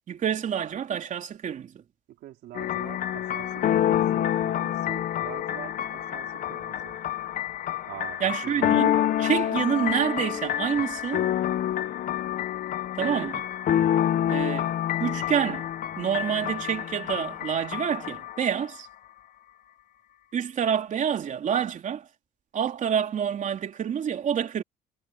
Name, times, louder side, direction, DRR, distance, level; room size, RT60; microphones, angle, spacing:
voice 1, 0.1-1.7 8.2-11.3 13.0-13.3 14.3-15.7 16.0-18.9 20.3-22.1 22.5-24.6, right 8 dB, 50° right, 3.4 m, -28 dB
voice 2, 2.1-7.0 7.8-8.7 13.0-13.3, right 14 dB, 75° right, 4.4 m, -43 dB
sound 1, 2.5-18.6, left 11 dB, 55° left, 0.9 m, -27 dB
cardioid pair, 110°, 17 cm